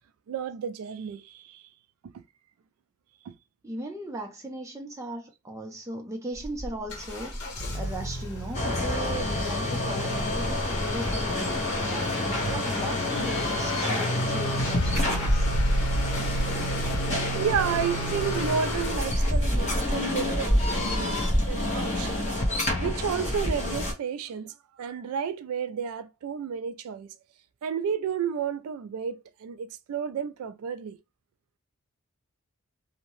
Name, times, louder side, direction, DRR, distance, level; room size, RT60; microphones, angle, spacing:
voice 1, 0.3-1.7 2.0-2.1 3.2-3.4 12.4-12.6 17.3-22.4 22.8-27.1 27.6-31.0, right 7 dB, 80° right, 0.3 m, -32 dB
voice 2, 3.6-7.4 7.7-15.5, right 1 dB, 15° right, 0.5 m, -37 dB
Motor vehicle (road) / Accelerating revving vroom, 6.3-19.0, right 1 dB, 80° left, 1.0 m, -34 dB
sound 1, 8.5-23.9, left 1 dB, 30° left, 0.8 m, -27 dB
2.7 x 2.1 x 3.0 m
head